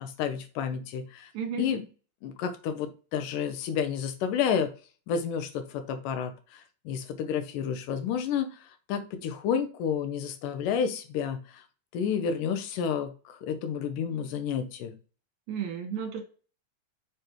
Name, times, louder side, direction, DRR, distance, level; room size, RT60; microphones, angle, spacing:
voice 1, 0.0-1.3 1.6-1.8 2.2-4.7 5.1-8.6 8.9-11.6 11.9-14.9, left 7 dB, 75° left, 7 dB, 2.4 m, -30 dB
voice 2, 1.3-1.7 15.5-16.2, right 7 dB, 65° right, 4 dB, 2.5 m, -33 dB
6.9 x 5.1 x 3.0 m, 0.36 s
omnidirectional pair, 4.0 m